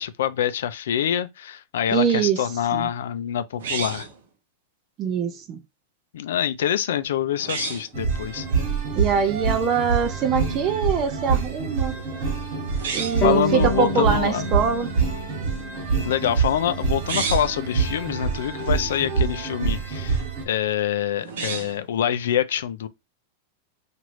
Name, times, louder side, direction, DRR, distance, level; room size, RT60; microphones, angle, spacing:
voice 1, 0.0-4.1 6.1-8.5 12.9-14.4 16.0-22.9, left 10 dB, 75° left, 0.4 m, -26 dB
voice 2, 1.9-2.4 2.7-2.9 5.0-5.6 8.9-11.9 12.9-14.9, right 7 dB, 20° right, 0.4 m, -23 dB
sound 1, 3.6-4.2 7.4-7.9 12.7-13.3 16.9-17.6 21.2-21.9, right 5 dB, 85° right, 0.8 m, -30 dB
sound 2, 7.9-20.4, right 5 dB, 40° right, 1.0 m, -26 dB
sound 3, 13.2-16.5, left 1 dB, 25° left, 0.7 m, -28 dB
3.1 x 2.5 x 3.0 m
supercardioid pair, 175°, 0 cm